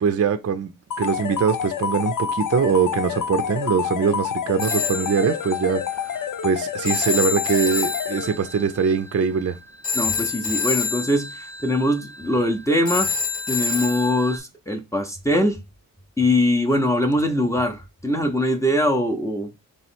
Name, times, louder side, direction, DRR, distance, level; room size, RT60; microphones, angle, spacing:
voice 1, 0.0-0.7 1.0-9.6, right 6 dB, 45° right, 0.5 m, -22 dB
sound 1, 0.9-8.7, left 8 dB, 60° left, 0.5 m, -28 dB
Telephone, 4.6-14.4, left 5 dB, 85° left, 1.4 m, -28 dB
voice 2, 9.9-13.1 13.5-15.6 16.2-19.5, left 1 dB, 10° left, 0.7 m, -22 dB
3.3 x 3.1 x 4.3 m
wide cardioid pair, 100°, 35 cm